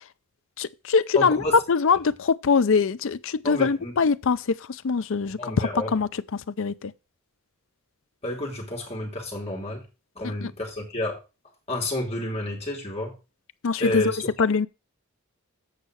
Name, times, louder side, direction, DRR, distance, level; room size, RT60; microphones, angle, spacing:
voice 1, 0.6-1.4 1.7-4.4 4.8-6.1 6.6-6.9 10.2-10.5 13.6-14.0 14.4-14.7, left 5 dB, 60° left, 0.5 m, -23 dB
voice 2, 1.1-1.6 3.4-3.9 5.3-5.9 8.2-9.8 10.1-11.2 11.7-13.1 13.8-14.3, left 1 dB, 30° left, 3.2 m, -30 dB
8.3 x 5.5 x 6.2 m
head